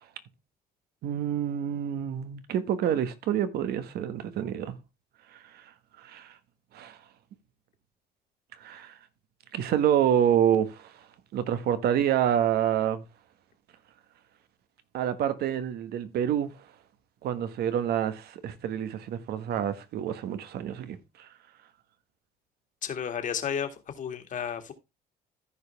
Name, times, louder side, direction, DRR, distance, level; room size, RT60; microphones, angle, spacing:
voice 1, 1.0-4.8 6.0-6.3 6.7-7.0 8.6-8.9 9.5-10.9 11.3-13.0 14.9-16.5 17.2-21.3, right 9 dB, 70° right, 1.4 m, -27 dB
voice 2, 22.8-24.7, left 8 dB, 50° left, 2.0 m, -32 dB
14.5 x 5.1 x 3.4 m
cardioid pair, 110°, 17 cm